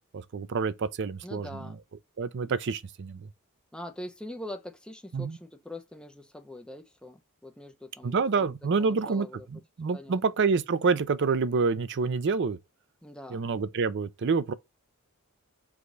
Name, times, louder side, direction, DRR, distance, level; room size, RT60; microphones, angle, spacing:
voice 1, 0.1-1.5 2.2-3.3 5.1-5.4 8.0-9.3 9.5-12.6 13.3-14.5, right 4 dB, 55° right, 0.4 m, -27 dB
voice 2, 1.2-1.8 3.7-8.5 8.8-9.5 9.9-10.2 13.0-13.5, left 1 dB, 5° left, 0.6 m, -43 dB
4.8 x 2.3 x 3.9 m
head